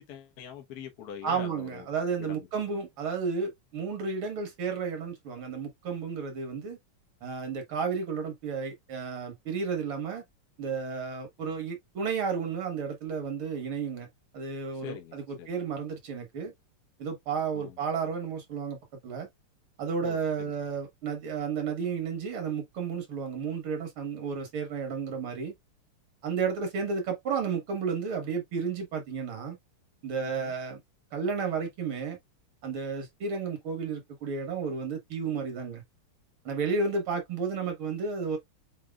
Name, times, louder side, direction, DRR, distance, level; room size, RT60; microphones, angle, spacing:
voice 1, 0.0-1.9 2.2-2.5 14.7-15.5 17.5-17.8 20.0-20.2 30.2-30.5, left 8 dB, 50° left, 1.3 m, -44 dB
voice 2, 1.2-6.8 7.2-10.2 10.6-14.1 14.3-16.5 17.0-18.8 19.0-19.3 19.8-25.5 26.2-29.6 30.0-30.8 31.1-32.2 32.6-35.8 36.5-38.4, right 5 dB, 70° right, 2.2 m, -32 dB
7.5 x 2.9 x 2.3 m
omnidirectional pair, 2.4 m